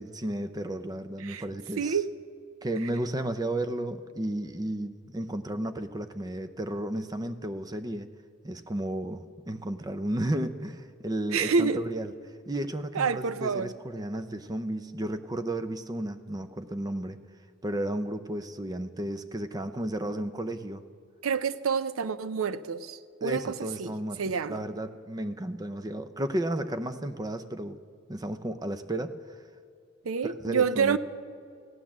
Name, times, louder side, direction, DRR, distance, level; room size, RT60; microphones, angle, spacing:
voice 1, 0.0-2.0 2.6-8.1 8.4-12.1 12.5-17.2 17.6-20.8 23.2-27.8 28.1-29.1 30.2-31.0, right 1 dB, 20° right, 0.6 m, -33 dB
voice 2, 1.8-2.1 11.3-11.8 12.9-13.7 21.2-23.9 24.2-24.6 30.0-31.0, right 5 dB, 90° right, 0.5 m, -28 dB
16.0 x 9.9 x 7.3 m
head